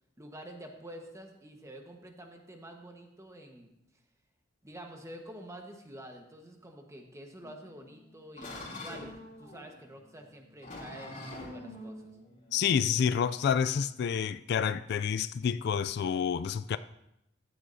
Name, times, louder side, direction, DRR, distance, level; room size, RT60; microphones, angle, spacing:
voice 1, 0.2-3.7 4.6-9.1 9.4-12.1, right 1 dB, 15° right, 1.2 m, -48 dB
sound 1, 7.4-14.0, left 1 dB, 40° left, 2.8 m, -46 dB
voice 2, 12.5-16.8, left 7 dB, 55° left, 0.3 m, -28 dB
14.5 x 10.5 x 2.7 m
head